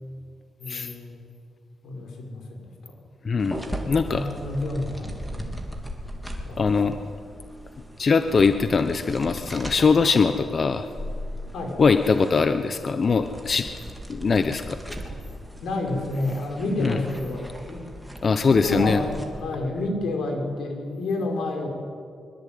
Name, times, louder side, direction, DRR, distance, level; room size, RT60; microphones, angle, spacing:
voice 1, 0.6-1.2 1.8-2.9 4.1-5.5 6.5-7.0 11.5-11.8 15.6-17.9 18.2-21.7, left 2 dB, 85° left, 2 dB, 6.0 m, -30 dB
voice 2, 3.2-3.6 3.9-4.2 6.6-7.0 8.0-10.9 11.8-13.7 14.1-15.0 16.8-17.0 18.2-19.0, left 5 dB, 40° left, 9 dB, 1.0 m, -21 dB
sound 1, 3.4-19.3, equal, ahead, 3.6 m, -38 dB
24.5 x 23.5 x 9.5 m, 2.3 s
wide cardioid pair, 135°, 0 cm